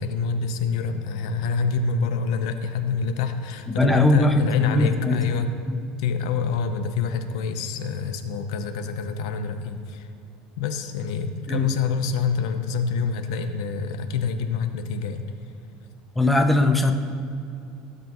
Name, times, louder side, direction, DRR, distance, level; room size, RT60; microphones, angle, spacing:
voice 1, 0.0-5.5 6.0-10.1 10.6-15.3, left 6 dB, 85° left, 8 dB, 0.7 m, -26 dB
voice 2, 3.8-5.2 5.7-5.8 11.5-11.7 16.2-16.9, left 1 dB, 5° left, 4 dB, 0.5 m, -20 dB
15.0 x 7.0 x 3.0 m, 2.5 s
cardioid pair, 155°, 3 cm